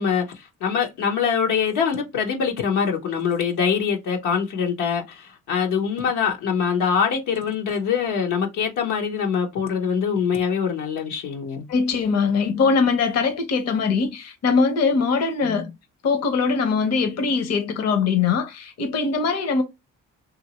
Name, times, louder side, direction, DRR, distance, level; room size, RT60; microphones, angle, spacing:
voice 1, 0.0-11.7 15.4-15.7, left 6 dB, 85° left, 1.0 m, -24 dB
voice 2, 11.7-15.7 16.0-19.6, left 5 dB, 55° left, 0.8 m, -22 dB
2.9 x 2.7 x 2.8 m
cardioid pair, 90°, 30 cm